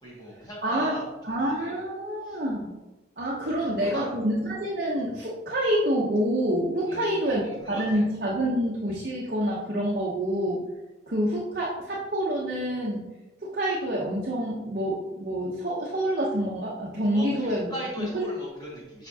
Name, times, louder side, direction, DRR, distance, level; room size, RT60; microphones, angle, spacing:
voice 1, 0.0-1.8 2.2-2.4 3.5-4.1 6.9-8.1 17.1-19.1, equal, 20° left, -6 dB, 2.0 m, -39 dB
voice 2, 0.6-0.9 1.2-2.7 3.2-7.4 7.7-10.6 11.1-13.1 13.4-17.7 18.0-18.3, equal, 50° right, -4 dB, 0.8 m, -27 dB
6.7 x 5.1 x 2.8 m, 1.0 s
head